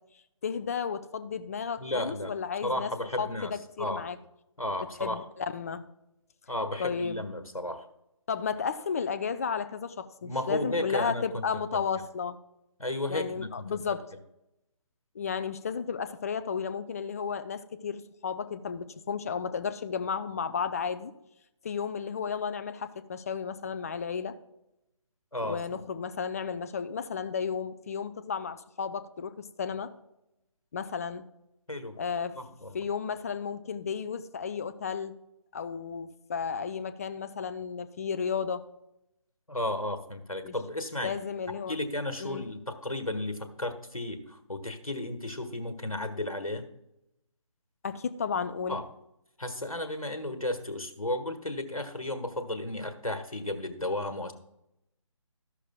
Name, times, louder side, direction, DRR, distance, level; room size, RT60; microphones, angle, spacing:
voice 1, 0.4-2.9 3.2-4.2 5.0-5.9 6.8-7.2 8.3-12.4 13.1-14.1 15.2-21.1 21.6-24.4 25.4-29.9 30.7-31.3 32.0-32.4 32.7-35.2 35.5-38.6 40.4-40.5 41.0-41.8 42.2-42.4 47.8-48.8, left 6 dB, 25° left, 11 dB, 0.5 m, -33 dB
voice 2, 1.8-2.3 2.6-4.0 4.6-5.2 6.5-7.9 10.2-11.4 12.8-13.8 25.3-25.6 31.7-31.9 32.3-32.8 39.5-41.1 41.7-46.6 48.7-48.9 49.4-54.3, left 1 dB, 90° left, 8 dB, 1.5 m, -33 dB
14.0 x 11.5 x 2.3 m, 0.85 s
figure-of-eight pair, 150°, 18 cm